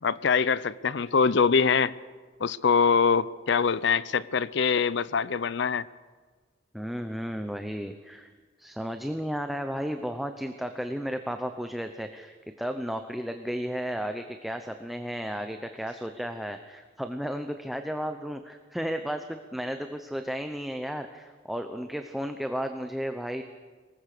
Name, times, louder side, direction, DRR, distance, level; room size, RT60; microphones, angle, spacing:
voice 1, 0.0-1.9 2.4-5.8, left 5 dB, 60° left, 18 dB, 0.6 m, -24 dB
voice 2, 6.7-8.3 8.6-23.4, equal, ahead, 6 dB, 0.8 m, -33 dB
24.0 x 20.0 x 6.7 m, 1.5 s
head